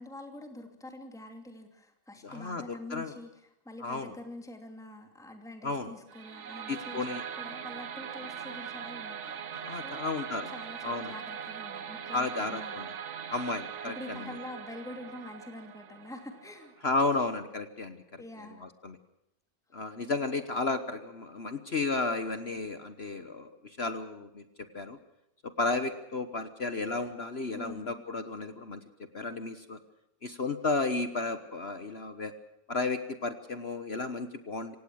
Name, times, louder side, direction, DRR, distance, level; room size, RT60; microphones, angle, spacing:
voice 1, 0.0-9.4 9.8-10.0 10.4-12.8 13.8-16.7 18.2-18.6 27.5-27.9, left 1 dB, ahead, 4 dB, 2.7 m, -45 dB
voice 2, 2.2-3.1 3.8-4.1 5.6-5.9 6.7-7.2 9.5-10.5 10.8-11.1 12.1-12.9 13.3-14.2 16.8-18.2 18.6-19.0 19.7-24.4 24.7-25.0 25.4-28.8 29.1-29.8 30.2-32.3 32.7-34.8, left 3 dB, 40° left, 10 dB, 1.2 m, -33 dB
sound 1, 6.1-17.1, right 8 dB, 50° right, 1.0 m, -41 dB
26.5 x 17.5 x 6.4 m, 0.86 s
omnidirectional pair, 1.9 m